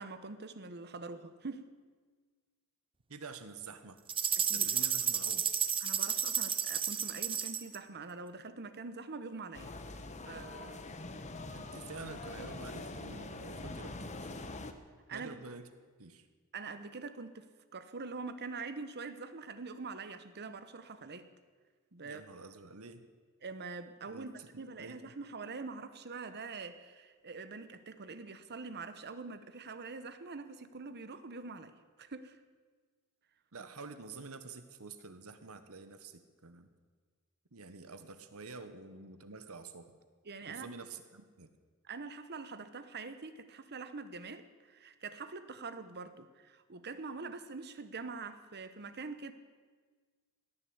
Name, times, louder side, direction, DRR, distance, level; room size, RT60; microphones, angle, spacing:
voice 1, 0.0-1.7 4.4-4.7 5.8-9.7 10.3-10.8 15.1-15.4 16.5-21.3 21.9-22.2 23.4-31.7 32.0-32.4 33.6-33.7 40.2-40.7 41.8-49.3, right 4 dB, 50° right, 12 dB, 1.0 m, -44 dB
voice 2, 3.1-4.0 4.5-5.4 11.5-14.4 15.1-15.7 16.0-16.3 22.0-23.1 24.1-24.3 24.5-25.0 33.5-36.7 37.5-39.9 40.5-41.5, right 4 dB, 70° right, 10 dB, 1.3 m, -48 dB
sound 1, 4.1-7.8, right 8 dB, 25° right, 0.7 m, -32 dB
sound 2, 9.5-14.7, left 2 dB, 30° left, 1.0 m, -44 dB
17.5 x 10.0 x 7.9 m, 1.5 s
head